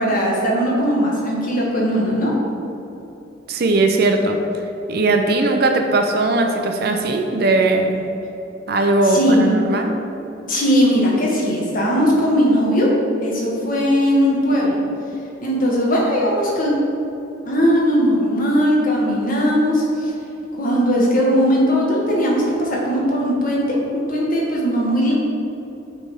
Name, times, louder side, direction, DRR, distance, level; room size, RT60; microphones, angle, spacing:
voice 1, 0.0-2.3 9.0-9.5 10.5-12.9 13.2-14.8 15.4-16.7 17.4-20.1 20.6-25.1, equal, 45° left, -3 dB, 1.5 m, -18 dB
voice 2, 3.5-4.4 4.9-8.1 8.7-9.9, right 2 dB, 55° right, 4 dB, 0.6 m, -18 dB
8.2 x 3.5 x 5.4 m, 2.9 s
head